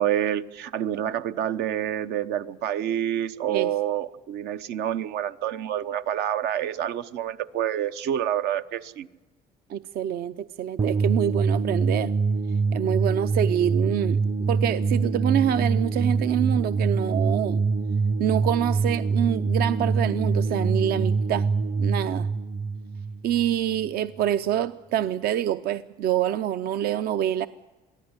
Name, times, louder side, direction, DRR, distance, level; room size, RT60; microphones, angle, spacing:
voice 1, 0.0-9.1, right 10 dB, 85° right, 11 dB, 1.0 m, -27 dB
voice 2, 9.7-12.1 12.7-14.2 14.5-17.6 18.2-21.5 21.8-22.3 23.2-27.5, right 10 dB, 65° right, 12 dB, 0.6 m, -26 dB
sound 1, 10.8-23.9, right 4 dB, 25° right, 0.6 m, -25 dB
23.5 x 15.0 x 9.7 m, 1.2 s
cardioid pair, 110°, 17 cm